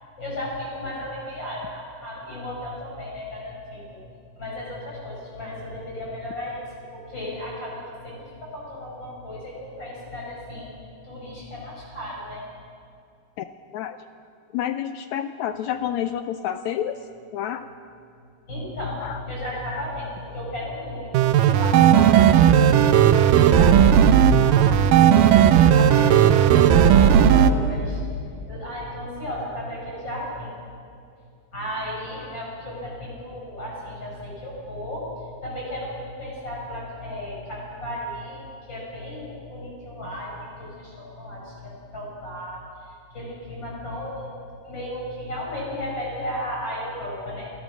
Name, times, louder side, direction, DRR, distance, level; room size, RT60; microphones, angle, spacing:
voice 1, 0.2-4.0 4.4-6.6 6.9-8.1 8.4-10.7 11.0-12.4 18.5-24.8 25.1-28.0 28.5-30.5 31.5-35.1 35.4-47.5, left 1 dB, 30° left, -4 dB, 6.8 m, -34 dB
voice 2, 14.5-16.9 17.3-17.7 19.0-19.2 19.7-19.8, left 10 dB, 80° left, 9 dB, 1.6 m, -29 dB
sound 1, 21.1-27.5, right 9 dB, 85° right, 2.5 m, -15 dB
28.0 x 15.0 x 6.2 m, 2.4 s
omnidirectional pair, 3.8 m